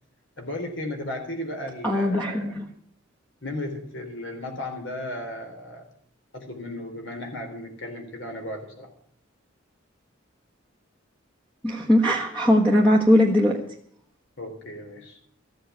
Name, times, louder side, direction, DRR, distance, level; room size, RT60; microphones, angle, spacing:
voice 1, 0.4-2.5 3.4-5.9 6.3-8.9 14.4-15.2, left 1 dB, 65° left, 3 dB, 3.5 m, -35 dB
voice 2, 1.8-2.7 11.6-13.6, left 1 dB, 10° left, -1 dB, 1.3 m, -20 dB
14.5 x 7.9 x 8.2 m, 0.63 s
head